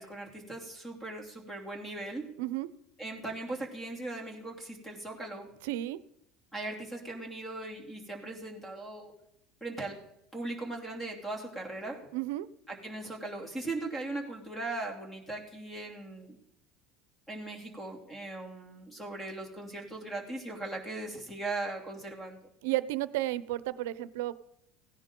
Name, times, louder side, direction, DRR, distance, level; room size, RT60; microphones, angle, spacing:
voice 1, 0.0-2.3 3.0-5.5 6.5-9.1 9.6-10.0 10.3-12.0 12.7-16.4 17.3-22.4, right 2 dB, 10° left, 2 dB, 2.9 m, -39 dB
voice 2, 2.4-2.7 5.6-6.0 12.1-12.5 22.6-24.4, right 15 dB, 90° right, 16 dB, 0.6 m, -32 dB
16.5 x 10.5 x 3.8 m, 0.77 s
supercardioid pair, 130°, 0 cm